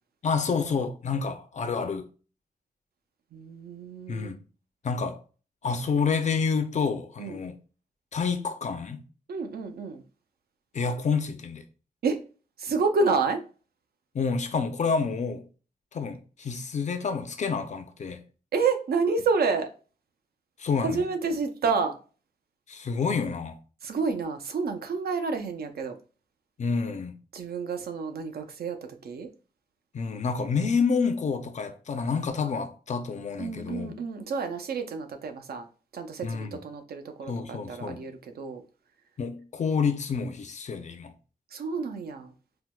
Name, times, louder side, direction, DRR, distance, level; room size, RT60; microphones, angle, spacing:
voice 1, 0.2-2.1 4.1-4.4 4.8-5.2 5.6-7.5 8.1-9.0 10.7-11.6 14.1-15.4 15.9-18.2 20.6-21.0 22.7-23.6 26.6-27.2 29.9-33.9 36.2-36.6 37.3-38.0 39.2-41.1, left 5 dB, 50° left, 0.5 m, -28 dB
voice 2, 3.3-4.3 7.2-7.4 9.3-10.0 12.0-12.2 12.6-13.4 18.5-19.7 20.8-21.9 23.8-26.0 27.3-29.3 33.4-35.7 35.9-38.6 41.5-42.3, right 4 dB, 80° right, 0.5 m, -29 dB
4.4 x 2.1 x 2.2 m
wide cardioid pair, 125°, 16 cm